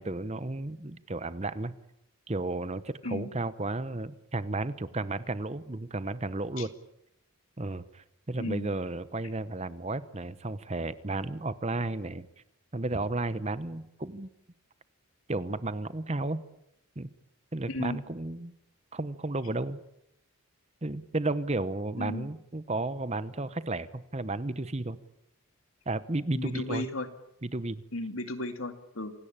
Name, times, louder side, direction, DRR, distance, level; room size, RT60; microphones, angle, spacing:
voice 1, 0.0-1.7 2.3-6.7 7.6-12.3 12.7-14.3 15.3-16.4 17.0-17.1 17.5-18.5 18.9-19.8 20.8-25.0 25.9-26.8 27.4-27.8, right 2 dB, 30° right, 15 dB, 0.9 m, -33 dB
voice 2, 8.4-8.7 17.7-18.0 22.0-22.3 26.3-27.1 27.9-29.1, left 2 dB, 70° left, 8 dB, 2.4 m, -35 dB
27.0 x 18.0 x 8.8 m, 0.81 s
head